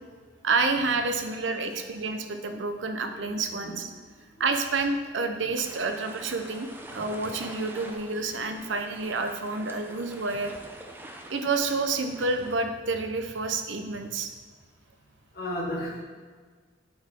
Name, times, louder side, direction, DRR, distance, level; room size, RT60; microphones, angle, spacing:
voice 1, 0.4-3.8 4.4-10.5 11.3-14.3, right 3 dB, 85° right, 7 dB, 0.6 m, -29 dB
voice 2, 3.1-3.8 5.4-5.5 6.0-6.1 6.9-7.0 7.8-7.9 8.7-8.8 15.3-16.0, left 1 dB, 55° left, -4 dB, 1.8 m, -36 dB
sound 1, 5.5-12.6, right 1 dB, 10° right, 0.5 m, -45 dB
8.5 x 4.1 x 4.4 m, 1.5 s
head